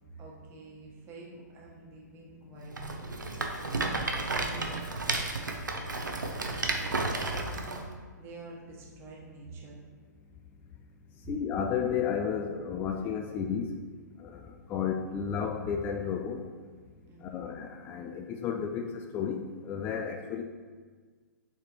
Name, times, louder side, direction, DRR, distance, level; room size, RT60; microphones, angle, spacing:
voice 1, 0.2-5.3 5.7-6.1 6.6-7.8 8.2-9.8 14.7-14.9 17.1-17.4, right 2 dB, 25° right, -3 dB, 1.3 m, -48 dB
Rattle, 2.7-7.8, right 2 dB, 80° right, 0.7 m, -32 dB
voice 2, 11.3-13.7 14.2-14.4 14.7-16.4 17.2-20.4, left 7 dB, 20° left, 4 dB, 0.3 m, -32 dB
7.2 x 4.1 x 3.1 m, 1.5 s
figure-of-eight pair, 120°, 10 cm